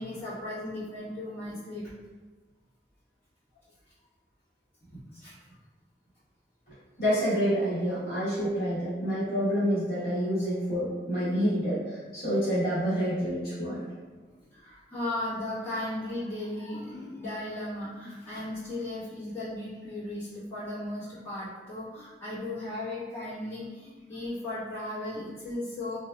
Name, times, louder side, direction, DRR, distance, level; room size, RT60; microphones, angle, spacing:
voice 1, 0.0-1.9 4.8-5.5 11.4-11.5 14.3-26.0, left 1 dB, 15° left, -15 dB, 1.4 m, -36 dB
voice 2, 7.0-13.9, equal, 60° left, -10 dB, 1.4 m, -28 dB
3.1 x 2.6 x 2.3 m, 1.3 s
head